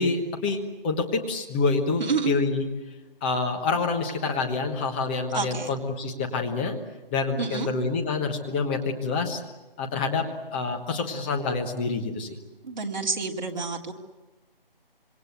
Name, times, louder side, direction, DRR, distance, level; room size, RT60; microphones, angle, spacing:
voice 1, 0.0-2.6 3.2-6.8 7.1-9.4 9.8-10.2 10.5-12.3, left 4 dB, 10° left, 3 dB, 1.2 m, -27 dB
voice 2, 2.0-2.3 5.3-5.7 7.4-7.7 12.6-13.9, right 4 dB, 50° right, 1 dB, 3.2 m, -28 dB
26.5 x 24.5 x 8.1 m, 1.1 s
figure-of-eight pair, 165°, 29 cm